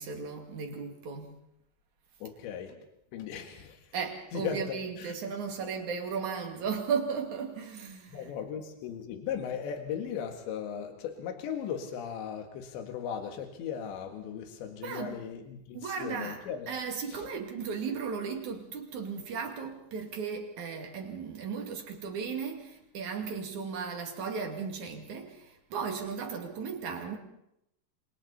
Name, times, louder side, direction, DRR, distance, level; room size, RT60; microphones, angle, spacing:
voice 1, 0.0-1.3 3.9-8.3 14.8-15.2 15.7-16.4 16.7-27.2, right 6 dB, 50° right, 3.5 m, -36 dB
voice 2, 2.2-2.8 3.1-3.8 4.3-5.2 8.1-16.7 17.1-17.3, left 8 dB, 85° left, 4.1 m, -37 dB
28.0 x 26.0 x 4.2 m
omnidirectional pair, 5.0 m